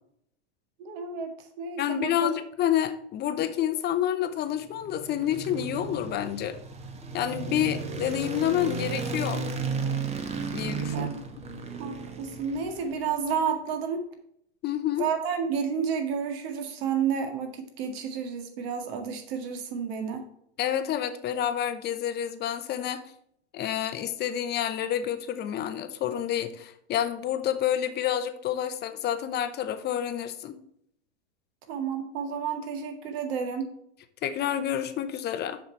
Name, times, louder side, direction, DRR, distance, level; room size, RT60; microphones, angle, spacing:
voice 1, 0.8-1.3 1.6-2.3 10.9-11.2 11.8-14.0 15.0-20.2 31.7-33.7, right 6 dB, 60° right, 5 dB, 1.9 m, -31 dB
voice 2, 1.8-6.6 7.1-9.4 10.5-11.1 14.6-15.0 20.6-23.0 23.5-30.6 34.2-35.6, left 10 dB, 30° left, 10 dB, 0.8 m, -29 dB
sound 1, 4.7-13.1, right 4 dB, 20° right, 1.0 m, -34 dB
7.0 x 5.7 x 4.6 m, 0.70 s
hypercardioid pair, 120°, 34 cm